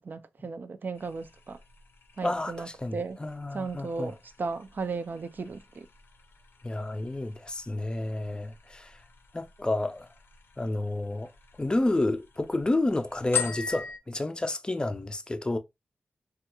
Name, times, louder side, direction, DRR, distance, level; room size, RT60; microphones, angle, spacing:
voice 1, 0.0-1.6 2.2-3.2 3.5-5.9, right 4 dB, 55° right, 0.3 m, -35 dB
sound 1, 0.9-14.0, left 6 dB, 80° left, 0.5 m, -42 dB
voice 2, 2.2-4.1 6.6-9.0 9.3-10.1 10.6-11.3 11.6-15.6, left 2 dB, 20° left, 0.4 m, -30 dB
3.4 x 2.3 x 2.8 m
wide cardioid pair, 75°, 4 cm